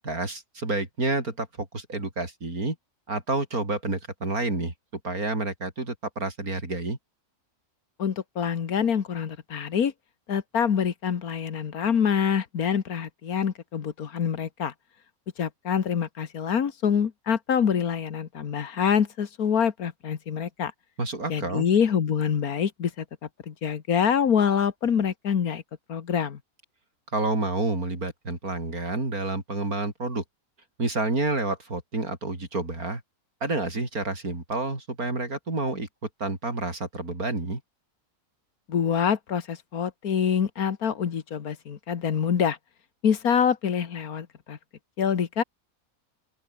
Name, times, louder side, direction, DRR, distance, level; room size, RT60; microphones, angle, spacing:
voice 1, 0.0-2.8 3.1-4.7 5.0-7.0 21.0-21.7 27.1-30.2 30.8-33.0 33.4-35.9 36.2-37.6, right 2 dB, 80° right, 5.5 m, -29 dB
voice 2, 8.0-9.9 10.3-14.7 15.4-20.7 21.3-23.1 23.5-25.6 25.9-26.4 38.7-42.6 43.0-44.6 45.0-45.4, left 7 dB, 80° left, 1.9 m, -25 dB
open air
omnidirectional pair, 1.5 m